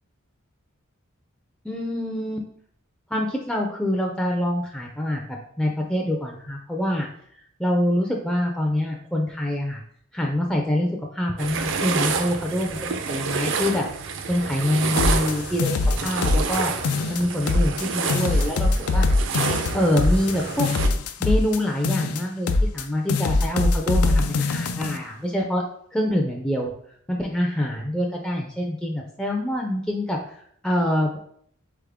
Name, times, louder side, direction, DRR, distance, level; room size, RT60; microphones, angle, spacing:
voice 1, 1.6-2.5 3.1-7.1 7.6-9.8 10.1-13.9 14.3-16.7 17.1-19.1 19.7-20.7 21.2-25.6 25.9-26.7 27.1-30.2 30.6-31.2, left 1 dB, 5° left, 0 dB, 0.4 m, -25 dB
sound 1, 11.4-20.9, right 5 dB, 55° right, 0.4 m, -29 dB
sound 2, 15.0-16.6 16.8-17.8 18.1-21.6 21.8-22.8 23.1-25.0, left 3 dB, 85° left, 0.4 m, -22 dB
4.0 x 3.5 x 3.4 m, 0.64 s
head